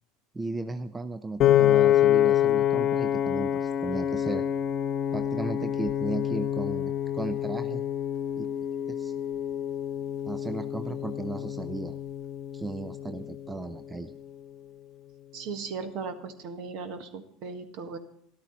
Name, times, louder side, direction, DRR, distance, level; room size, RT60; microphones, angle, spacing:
voice 1, 0.3-4.4 5.1-7.8 8.4-9.1 10.2-12.0 12.5-14.1, right 3 dB, 15° right, 11 dB, 0.6 m, -35 dB
Piano, 1.4-13.7, left 11 dB, 45° left, 0.5 m, -27 dB
voice 2, 15.3-18.0, right 5 dB, 55° right, 8 dB, 1.6 m, -37 dB
13.0 x 12.0 x 4.2 m, 0.69 s
figure-of-eight pair, 75°, 0 cm